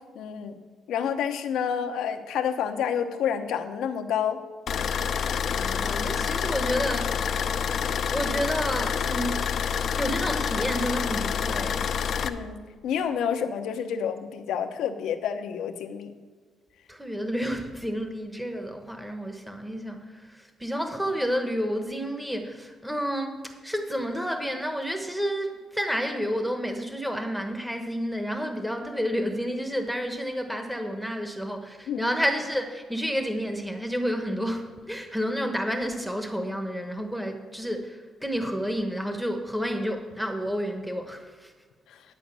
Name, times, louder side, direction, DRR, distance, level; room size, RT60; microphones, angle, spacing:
voice 1, 0.1-0.6 0.9-4.4 12.2-12.6 12.8-16.1 31.9-32.1, left 8 dB, 80° left, 8 dB, 0.9 m, -29 dB
sound 1, 4.7-12.3, left 7 dB, 60° left, 0.6 m, -27 dB
voice 2, 5.6-7.2 8.1-9.5 9.9-11.9 16.9-41.5, equal, ahead, 5 dB, 1.1 m, -30 dB
11.0 x 5.1 x 8.2 m, 1.5 s
cardioid pair, 90°, 0 cm